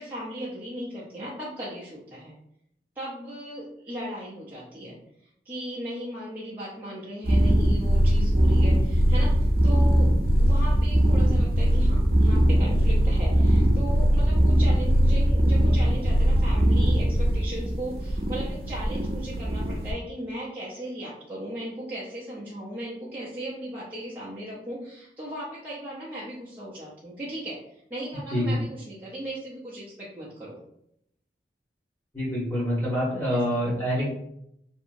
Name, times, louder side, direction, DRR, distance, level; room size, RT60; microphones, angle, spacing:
voice 1, 0.0-2.4 3.0-5.0 5.4-10.1 10.4-27.6 27.9-30.6 33.3-33.6, right 1 dB, 10° right, -9 dB, 0.5 m, -37 dB
sound 1, 7.2-19.9, equal, 55° right, 0.5 m, -21 dB
voice 2, 32.1-34.1, equal, 10° left, -7 dB, 1.2 m, -26 dB
2.8 x 2.6 x 2.5 m, 0.76 s
head